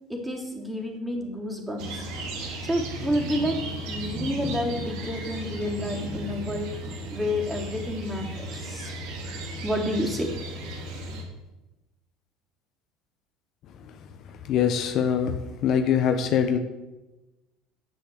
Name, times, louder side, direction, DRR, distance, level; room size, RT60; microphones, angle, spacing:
voice 1, 0.1-2.0 2.6-6.8 7.1-8.9 9.6-10.3, equal, 10° right, -1 dB, 3.4 m, -29 dB
sound 1, 1.8-11.2, right 1 dB, 70° right, 3.2 m, -35 dB
voice 2, 14.5-15.3 15.6-16.6, left 8 dB, 55° left, 8 dB, 1.0 m, -23 dB
10.5 x 7.0 x 7.8 m, 1.1 s
supercardioid pair, 90°, 0 cm